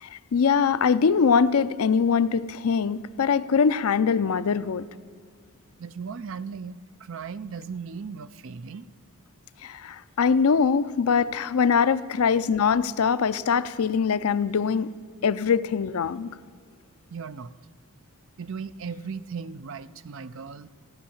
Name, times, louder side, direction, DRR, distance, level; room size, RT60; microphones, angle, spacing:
voice 1, 0.0-4.9 9.6-14.9 15.2-16.3, left 6 dB, 85° left, 14 dB, 0.5 m, -23 dB
voice 2, 5.8-8.8 10.4-10.5 17.1-17.5 18.4-20.7, right 5 dB, 60° right, 14 dB, 0.5 m, -37 dB
15.5 x 10.0 x 7.1 m, 2.1 s
head